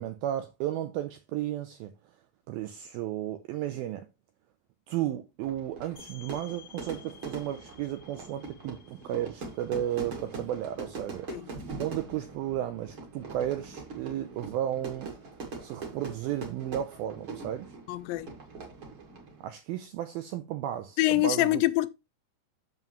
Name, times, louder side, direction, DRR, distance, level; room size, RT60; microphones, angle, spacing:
voice 1, 0.0-1.9 2.5-4.1 4.9-11.3 11.8-15.1 15.6-17.7 19.4-21.6, right 12 dB, 90° right, 2.1 m, -33 dB
Fire / Fireworks, 5.4-19.5, right 4 dB, 40° right, 2.0 m, -42 dB
sound 1, 6.0-11.4, left 8 dB, 45° left, 1.6 m, -55 dB
voice 2, 17.9-18.3 21.0-21.9, left 18 dB, 90° left, 2.9 m, -25 dB
8.2 x 7.1 x 3.1 m
omnidirectional pair, 5.0 m